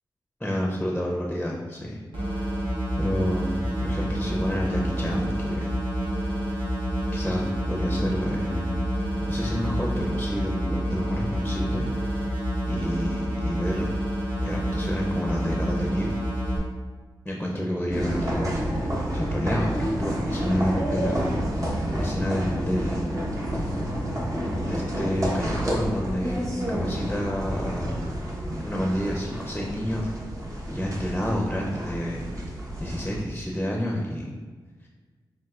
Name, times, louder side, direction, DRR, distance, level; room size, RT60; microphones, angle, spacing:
voice 1, 0.4-2.0 2.9-5.7 7.1-8.8 9.2-11.8 12.7-13.9 14.4-16.1 17.2-18.6 19.1-21.3 21.6-23.2 24.6-27.9 28.6-30.1 30.7-32.2 32.8-34.3 34.8-34.9, equal, 10° left, -1 dB, 0.7 m, -29 dB
sound 1, 2.1-16.6, equal, 85° right, 1.3 m, -28 dB
sound 2, 17.9-33.2, equal, 40° right, 1.1 m, -29 dB
7.1 x 2.8 x 2.5 m, 1.4 s
supercardioid pair, 40°, 9 cm